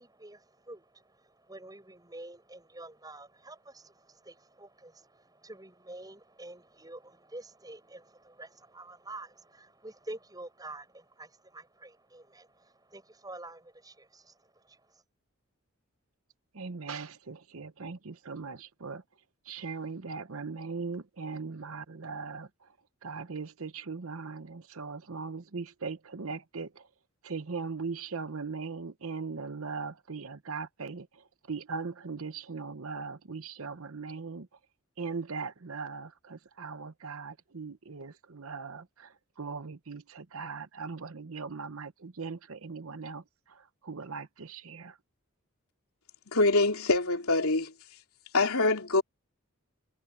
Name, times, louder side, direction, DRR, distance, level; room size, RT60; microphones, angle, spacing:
voice 1, 0.0-15.0, right 2 dB, 15° right, 7.6 m, -48 dB
voice 2, 16.5-19.0 19.5-22.5 23.0-26.9 27.2-34.5 35.0-45.0, right 4 dB, 70° right, 0.9 m, -39 dB
voice 3, 46.3-47.7 48.3-49.0, left 2 dB, 75° left, 2.9 m, -24 dB
head